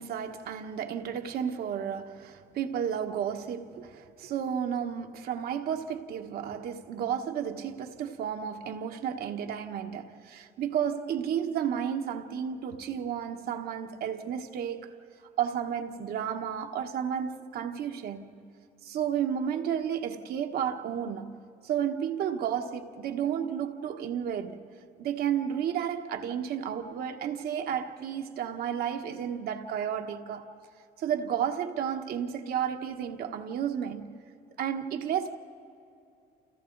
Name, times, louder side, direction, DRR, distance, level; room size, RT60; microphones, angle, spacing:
voice 1, 0.0-15.0 15.4-18.3 18.8-21.4 21.6-24.6 25.0-30.5 31.0-34.1 34.6-35.4, right 8 dB, 65° right, 1.4 m, -32 dB
29.5 x 29.0 x 4.0 m
cardioid pair, 110°, 17 cm